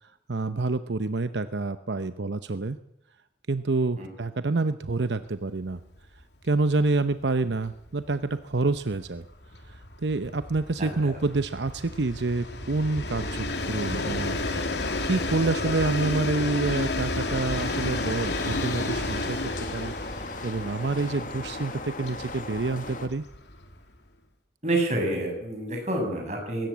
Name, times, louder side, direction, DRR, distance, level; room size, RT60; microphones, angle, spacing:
voice 1, 0.0-2.8 3.5-5.8 6.4-9.2 9.7-14.4 15.0-23.2, right 3 dB, 85° right, 11 dB, 0.8 m, -28 dB
Train, 5.7-5.8 6.2-6.3 6.5-24.0, left 2 dB, 80° left, 2.9 m, -32 dB
voice 2, 10.8-11.2 24.6-26.7, right 1 dB, 40° right, 2 dB, 7.1 m, -28 dB
sound 1, 17.5-23.1, left 3 dB, 50° left, 1.8 m, -38 dB
20.5 x 17.0 x 8.5 m, 0.81 s
head